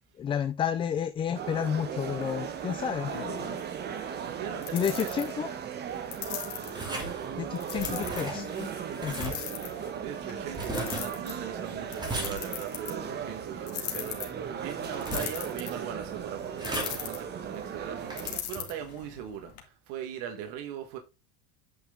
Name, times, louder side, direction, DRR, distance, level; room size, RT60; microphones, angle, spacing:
voice 1, 0.2-3.1 4.7-5.5 7.4-8.7 9.0-9.4, left 8 dB, 15° left, 0.3 m, -31 dB
sound 1, 1.3-18.4, right 8 dB, 30° right, 1.2 m, -37 dB
sound 2, 2.1-19.6, left 11 dB, 45° left, 2.2 m, -42 dB
voice 2, 4.2-5.2 10.0-19.5 19.9-21.0, right 9 dB, 65° right, 1.6 m, -40 dB
sound 3, 6.7-18.9, right 1 dB, 15° right, 2.5 m, -39 dB
8.9 x 5.4 x 3.7 m
cardioid pair, 145°, 32 cm